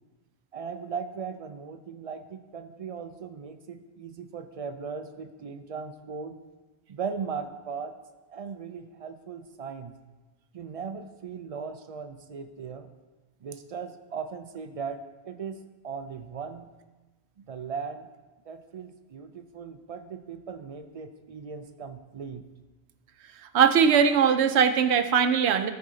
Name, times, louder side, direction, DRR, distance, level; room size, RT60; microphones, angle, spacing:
voice 1, 0.5-6.4 6.9-7.9 8.3-9.9 10.5-12.9 13.4-16.7 17.5-18.1 18.5-22.4, right 6 dB, 55° right, 8 dB, 0.4 m, -38 dB
voice 2, 23.5-25.7, right 7 dB, 80° right, 10 dB, 0.8 m, -20 dB
13.5 x 4.8 x 3.8 m, 1.2 s
omnidirectional pair, 1.1 m